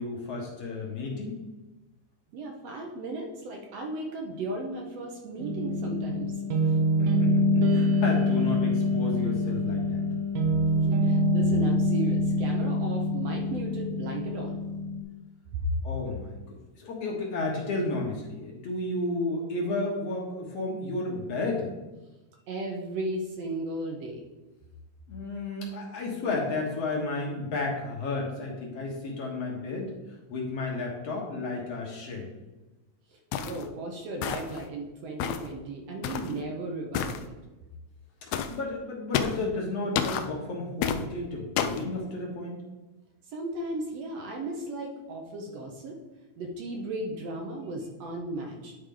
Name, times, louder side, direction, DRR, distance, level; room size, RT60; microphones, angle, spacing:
voice 1, 0.0-1.4 7.0-10.0 15.8-21.7 25.1-29.9 30.3-32.3 38.2-42.7, left 2 dB, 60° left, -1 dB, 2.2 m, -32 dB
voice 2, 2.3-6.3 6.6-6.7 10.7-14.6 15.5-15.9 22.5-24.2 33.1-37.3 43.3-46.0 46.4-48.7, right 1 dB, 65° right, 1 dB, 1.9 m, -35 dB
sound 1, 5.4-15.0, left 1 dB, 90° right, 2.5 m, -25 dB
Footsteps Mountain Boots Gritty Ground Stones Pebbles Mono, 33.3-33.6 34.2-34.6 35.2-35.5 36.0-36.3 36.9-37.2 38.3-38.6 39.1-39.4 40.0-40.3 40.8-41.0 41.6-41.8, left 8 dB, 80° left, 1.8 m, -29 dB
10.5 x 4.8 x 3.8 m, 1.1 s
omnidirectional pair, 3.5 m